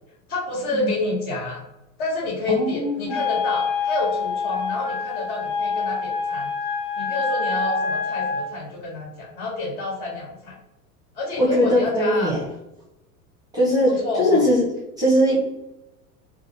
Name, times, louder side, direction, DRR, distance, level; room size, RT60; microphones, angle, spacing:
voice 1, 0.3-1.6 2.0-6.5 7.0-10.6 11.1-12.4 13.9-14.5, left 2 dB, 60° left, -3 dB, 1.3 m, -29 dB
voice 2, 2.5-3.2 11.4-12.4 13.5-14.7 15.0-15.5, equal, 10° right, -5 dB, 0.5 m, -20 dB
Wind instrument woodwind instrument, 3.1-8.5, left 5 dB, 35° left, 0.8 m, -26 dB
2.8 x 2.5 x 2.6 m, 0.91 s
figure-of-eight pair, 85°, 49 cm